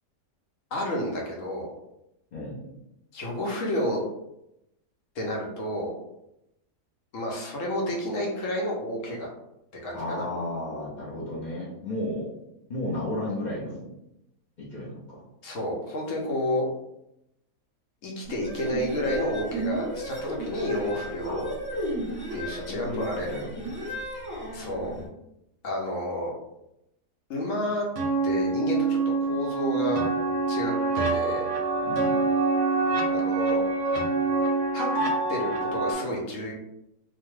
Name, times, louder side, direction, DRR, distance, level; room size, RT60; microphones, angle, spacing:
voice 1, 0.7-1.8 3.1-4.0 5.2-5.9 7.1-9.3 9.8-10.3 15.4-16.7 18.0-21.5 22.3-23.4 24.5-24.9 25.6-26.3 27.3-27.9 28.2-30.0 30.5-31.5 33.1-33.6 34.7-34.9 35.3-36.5, left 1 dB, 60° left, -1 dB, 0.9 m, -30 dB
voice 2, 2.3-2.7 9.9-12.3 12.7-13.9 14.6-15.2 21.2-21.5 22.5-23.5 31.8-32.2, left 1 dB, 80° left, -6 dB, 0.4 m, -34 dB
sound 1, 18.3-25.1, right 1 dB, 20° right, 1.2 m, -34 dB
sound 2, 28.0-35.9, right 3 dB, 75° right, 1.0 m, -25 dB
2.8 x 2.2 x 3.1 m, 0.84 s
omnidirectional pair, 1.8 m